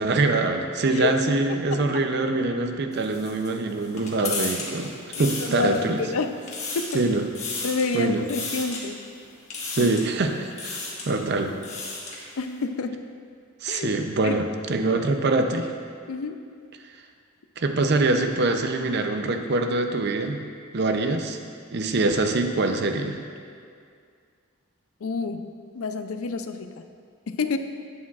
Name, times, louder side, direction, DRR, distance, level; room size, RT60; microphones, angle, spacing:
voice 1, 0.0-6.0 6.9-7.2 7.9-8.2 9.8-11.6 13.6-15.7 17.6-20.4 20.7-21.4 21.7-23.2, right 2 dB, 50° right, 6 dB, 0.5 m, -24 dB
voice 2, 1.5-1.8 5.1-6.5 6.7-7.0 7.6-9.1 9.8-9.9 12.4-13.0 13.7-13.9 14.2-14.4 16.1-16.4 25.0-25.5 25.7-26.8 27.3-27.6, left 4 dB, 75° left, 8 dB, 0.5 m, -29 dB
sound 1, 2.9-6.0 6.3-7.0 7.3-7.9 8.3-8.8 9.5-10.1 10.5-11.1 11.5-12.2, left 3 dB, 30° left, 1.4 m, -33 dB
11.0 x 8.6 x 2.4 m, 2.2 s
head